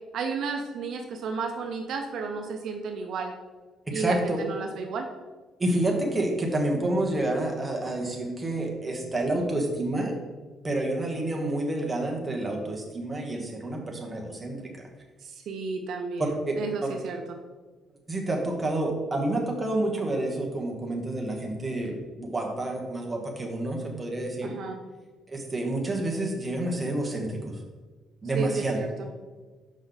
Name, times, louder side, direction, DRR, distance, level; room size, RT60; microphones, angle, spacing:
voice 1, 0.1-3.3 3.9-5.1 15.2-17.4 24.4-24.8 28.3-29.1, right 4 dB, 60° right, 3 dB, 0.6 m, -32 dB
voice 2, 3.9-4.4 5.6-10.1 10.6-14.6 16.2-16.5 18.1-24.5 25.3-27.6 28.2-28.8, right 1 dB, 15° right, 0 dB, 1.2 m, -29 dB
6.2 x 5.3 x 4.0 m, 1.3 s
cardioid pair, 150°, 0 cm